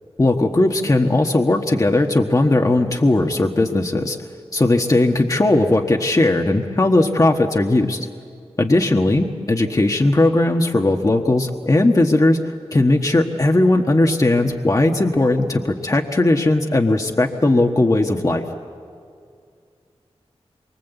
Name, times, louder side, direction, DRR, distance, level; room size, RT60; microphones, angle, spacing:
voice 1, 0.2-4.2 4.5-8.1 8.6-18.4, left 2 dB, 30° left, 2 dB, 1.4 m, -18 dB
27.5 x 24.0 x 8.1 m, 2.3 s
wide cardioid pair, 75°, 11 cm